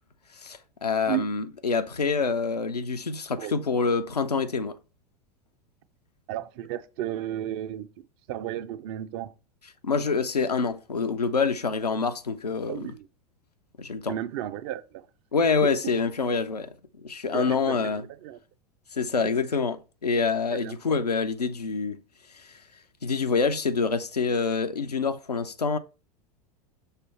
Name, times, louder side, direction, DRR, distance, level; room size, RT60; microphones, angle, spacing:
voice 1, 0.4-4.8 9.8-12.8 13.8-14.1 15.3-16.7 17.0-18.0 18.9-22.0 23.0-25.8, left 4 dB, 80° left, 0.5 m, -26 dB
voice 2, 6.3-7.9 8.3-9.3 12.7-13.1 14.1-15.1 15.6-15.9 17.3-18.4 20.5-21.0, right 12 dB, 40° right, 0.6 m, -34 dB
6.6 x 3.3 x 4.3 m
figure-of-eight pair, 90°, 20 cm